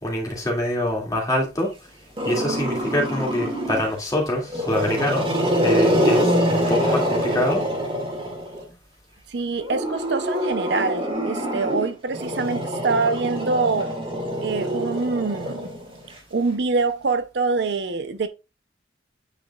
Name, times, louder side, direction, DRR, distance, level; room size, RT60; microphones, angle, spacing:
voice 1, 0.0-1.7 2.2-7.6, left 1 dB, 20° left, 2.2 m, -25 dB
Growling, 2.2-3.9 4.4-8.6 9.6-16.1, equal, 30° right, 2.2 m, -25 dB
voice 2, 9.3-13.9 14.4-15.7 16.3-18.3, right 4 dB, 65° right, 0.6 m, -25 dB
9.0 x 5.1 x 2.3 m
head